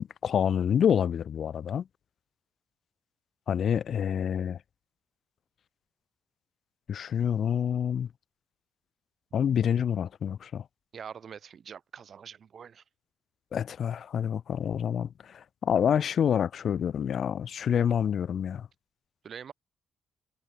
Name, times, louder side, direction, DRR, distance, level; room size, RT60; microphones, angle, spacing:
voice 1, 0.0-1.8 3.5-4.6 6.9-8.1 9.3-10.6 13.5-15.1 15.6-18.6, left 8 dB, 60° left, 0.6 m, -27 dB
voice 2, 10.9-12.8 19.2-19.5, right 7 dB, 50° right, 0.8 m, -44 dB
cardioid pair, 90°, 0 cm